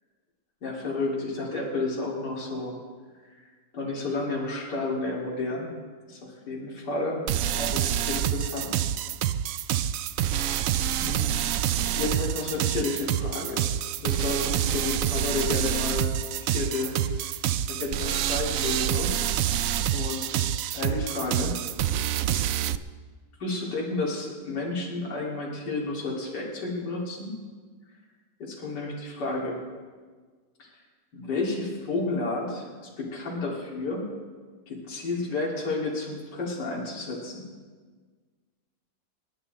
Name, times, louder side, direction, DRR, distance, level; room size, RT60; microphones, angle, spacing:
voice 1, 0.6-2.7 3.7-5.7 6.1-6.2 6.5-7.2 7.5-8.7 10.3-10.5 11.0-11.3 12.0-13.6 14.0-16.1 16.4-17.4 17.7-19.2 19.9-21.6 22.2-22.6 23.4-27.3 28.4-29.6 31.1-34.0 34.7-37.4, left 3 dB, 65° left, -3 dB, 3.1 m, -31 dB
sound 1, 7.3-22.8, right 11 dB, 85° right, 0.7 m, -27 dB
28.0 x 9.6 x 4.0 m, 1.5 s
omnidirectional pair, 2.0 m